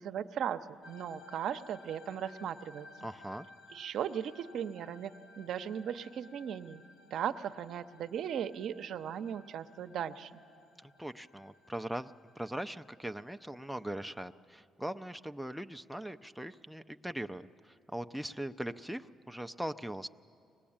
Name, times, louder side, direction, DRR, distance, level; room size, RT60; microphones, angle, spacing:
voice 1, 0.0-2.9 3.7-6.8 7.1-10.4, right 9 dB, 70° right, 9 dB, 0.8 m, -37 dB
sound 1, 0.8-14.3, left 2 dB, 65° left, 2.4 m, -58 dB
voice 2, 3.0-3.5 10.8-20.1, right 1 dB, ahead, 7 dB, 0.6 m, -40 dB
24.0 x 19.5 x 8.7 m, 2.4 s
cardioid pair, 80°, 0 cm